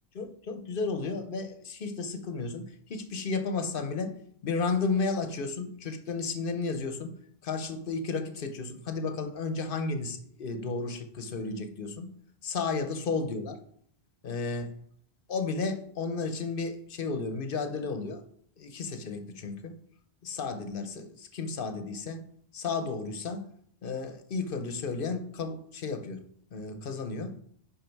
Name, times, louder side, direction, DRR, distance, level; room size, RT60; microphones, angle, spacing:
voice 1, 0.1-4.1 4.4-7.1 7.4-12.1 12.4-13.6 14.2-14.7 15.3-18.2 18.6-19.8 20.2-22.3 22.5-23.5 23.8-26.2 26.5-27.4, left 4 dB, 60° left, 8 dB, 1.0 m, -33 dB
10.5 x 4.3 x 4.6 m, 0.65 s
omnidirectional pair, 1.1 m